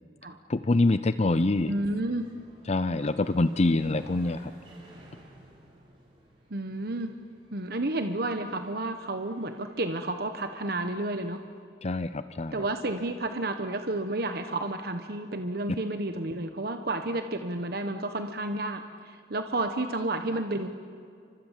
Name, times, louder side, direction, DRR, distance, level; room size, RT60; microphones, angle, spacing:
voice 1, 0.5-1.7 2.7-4.5 11.8-12.7, left 2 dB, 40° left, 12 dB, 0.6 m, -25 dB
sound 1, 0.6-11.6, right 1 dB, 30° right, 7.0 m, -55 dB
voice 2, 1.7-2.3 6.5-7.1 7.5-11.4 12.5-20.7, right 2 dB, 60° right, 7 dB, 1.2 m, -31 dB
29.5 x 25.0 x 7.4 m, 2.3 s
head